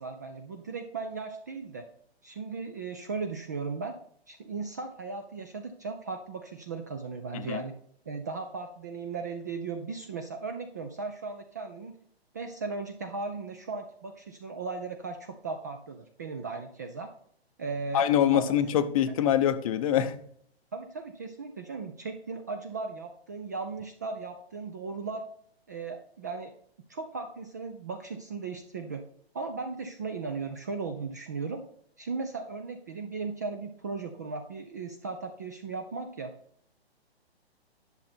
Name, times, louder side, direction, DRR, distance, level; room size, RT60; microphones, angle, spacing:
voice 1, 0.0-1.9 2.2-3.9 4.3-7.7 8.1-12.0 12.3-17.1 17.6-18.0 18.3-18.6 20.7-25.2 25.7-26.5 26.9-29.0 29.3-31.6 32.0-36.3, right 4 dB, 20° right, 0.3 m, -37 dB
voice 2, 17.9-20.2, left 10 dB, 35° left, 0.7 m, -24 dB
10.5 x 6.5 x 4.2 m
hypercardioid pair, 140°, 32 cm